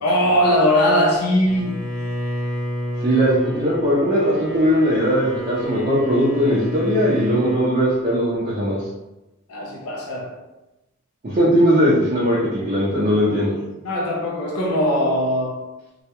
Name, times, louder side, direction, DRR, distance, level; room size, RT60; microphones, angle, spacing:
voice 1, 0.0-1.8 9.5-10.4 13.8-15.6, equal, 80° left, -2 dB, 0.5 m, -20 dB
Bowed string instrument, 1.5-7.7, equal, ahead, 1.0 m, -29 dB
voice 2, 3.0-8.8 11.2-13.5, equal, 35° right, -7 dB, 0.5 m, -19 dB
2.3 x 2.1 x 2.8 m, 0.97 s
head